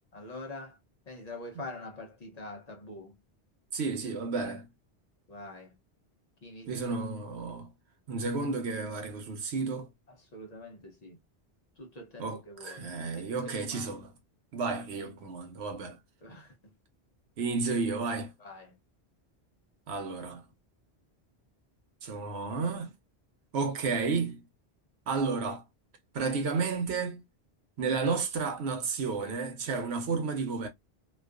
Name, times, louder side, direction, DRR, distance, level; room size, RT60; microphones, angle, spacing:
voice 1, 0.1-0.8 1.1-3.2 5.3-5.7 6.4-6.7 10.1-11.2 11.8-12.9 13.1-13.9 16.2-16.5 18.4-18.8, left 2 dB, 50° left, 0.6 m, -45 dB
voice 2, 3.7-4.7 6.7-7.7 8.1-9.9 12.2-14.1 14.5-16.0 17.4-18.3 19.9-20.4 22.0-22.9 23.5-24.4 25.1-25.6 26.1-27.2 27.8-30.7, right 4 dB, 80° right, 0.9 m, -32 dB
2.4 x 2.3 x 2.3 m
omnidirectional pair, 1.1 m